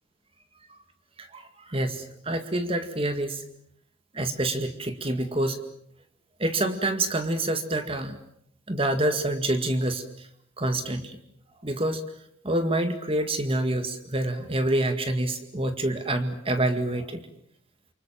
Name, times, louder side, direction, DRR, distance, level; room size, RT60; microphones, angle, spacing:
voice 1, 1.2-3.4 4.1-5.6 6.4-8.2 8.7-10.3 10.6-11.2 11.6-12.0 12.4-17.2, right 1 dB, 30° right, 8 dB, 2.1 m, -27 dB
28.0 x 25.0 x 7.6 m, 0.70 s
head